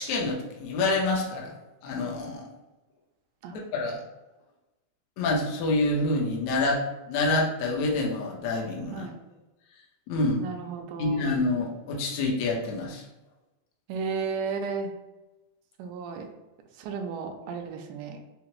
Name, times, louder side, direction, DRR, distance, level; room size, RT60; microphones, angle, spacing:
voice 1, 0.0-1.5 1.8-2.5 3.5-4.0 5.2-9.1 10.1-10.4 11.0-13.1, left 2 dB, 70° left, -2 dB, 1.8 m, -27 dB
voice 2, 10.4-11.2 13.9-14.9 15.8-16.3 16.8-18.2, right 5 dB, 85° right, 4 dB, 2.1 m, -33 dB
5.7 x 2.0 x 3.0 m, 1.0 s
omnidirectional pair, 3.7 m